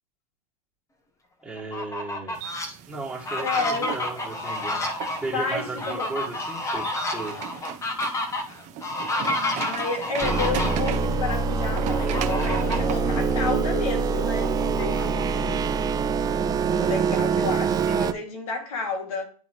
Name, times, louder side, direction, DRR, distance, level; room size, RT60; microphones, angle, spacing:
voice 1, 1.4-4.8 5.2-7.4, right 3 dB, 5° right, 1.9 m, -35 dB
Fowl, 1.6-2.7 3.1-10.9 11.9-13.0 13.4-13.5 13.9-15.6, left 2 dB, 15° left, 1.0 m, -30 dB
sound 1, 2.3-14.8, right 9 dB, 40° right, 0.9 m, -38 dB
voice 2, 3.4-4.0 5.3-6.1 9.6-15.6 16.7-19.2, left 4 dB, 80° left, 2.3 m, -31 dB
sound 2, 10.2-18.1, right 5 dB, 20° right, 0.4 m, -24 dB
10.5 x 3.8 x 3.0 m
hypercardioid pair, 110°, 19 cm